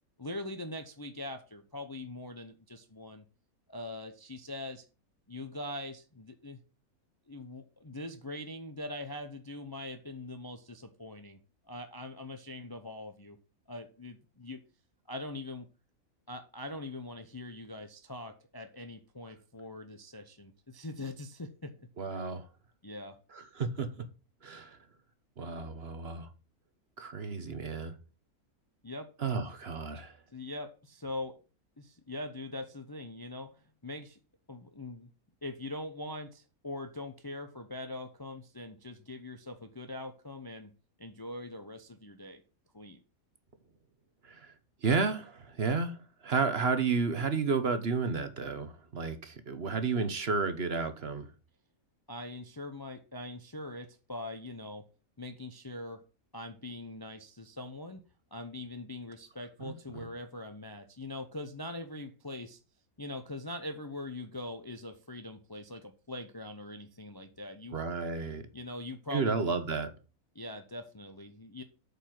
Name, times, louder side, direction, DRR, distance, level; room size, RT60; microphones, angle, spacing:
voice 1, 0.2-3.2 3.7-4.9 5.3-6.6 7.3-11.4 11.7-13.4 13.7-14.6 15.1-15.7 16.3-21.7 22.8-23.2 28.8-29.1 30.3-31.4 31.8-34.2 34.5-35.1 35.4-40.7 41.0-42.4 42.7-43.0 52.1-54.8 55.2-56.0 56.3-58.0 58.3-62.6 63.0-67.8 68.5-69.3 70.3-71.6, left 1 dB, 20° left, 7 dB, 0.6 m, -42 dB
voice 2, 22.0-22.5 23.3-24.1 24.4-24.8 25.4-26.3 27.0-28.0 29.2-30.2 44.2-44.5 44.8-51.3 59.6-60.0 67.7-68.4 69.1-69.9, right 4 dB, 45° right, 10 dB, 1.2 m, -32 dB
8.3 x 5.4 x 5.9 m, 0.33 s
omnidirectional pair, 1.5 m